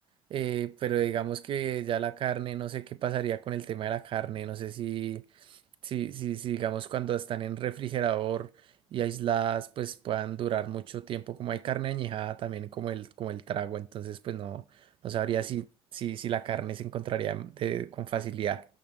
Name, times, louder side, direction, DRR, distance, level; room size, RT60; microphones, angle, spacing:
voice 1, 0.3-8.5 8.9-14.6 15.0-15.7 15.9-18.7, right 11 dB, 55° right, 0.4 m, -32 dB
10.5 x 3.7 x 3.6 m
cardioid pair, 115°, 11 cm